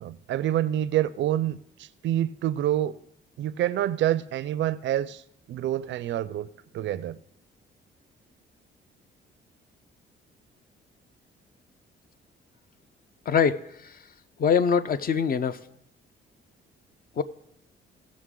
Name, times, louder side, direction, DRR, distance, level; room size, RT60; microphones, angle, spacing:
voice 1, 0.0-2.9 3.4-5.2 5.5-6.5 6.7-7.2, right 12 dB, 70° right, 0.4 m, -27 dB
voice 2, 13.3-13.6 14.4-15.6 17.2-17.3, left 6 dB, 45° left, 0.6 m, -23 dB
17.5 x 6.1 x 3.7 m
cardioid pair, 90°, 20 cm